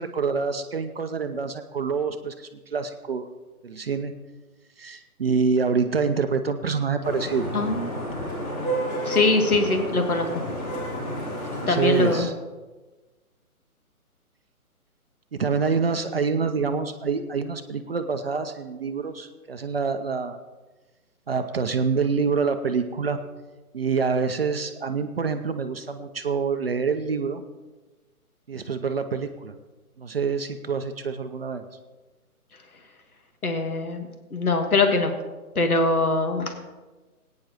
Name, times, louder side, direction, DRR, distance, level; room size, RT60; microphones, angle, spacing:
voice 1, 0.0-3.2 3.6-4.1 4.8-7.5 8.2-8.6 11.6-12.3 15.3-20.4 21.3-23.2 23.7-27.4 28.5-29.5 30.0-31.6, right 5 dB, 40° right, 8 dB, 0.6 m, -26 dB
Vehicle horn car horn honking / Traffic noise roadway noise, 7.0-12.2, right 1 dB, 30° left, 3.6 m, -31 dB
voice 2, 7.5-7.9 9.0-10.3 11.7-12.3 33.4-35.1 35.5-36.5, left 3 dB, 75° left, 5 dB, 1.6 m, -22 dB
20.0 x 9.4 x 3.0 m, 1.2 s
figure-of-eight pair, 140°, 44 cm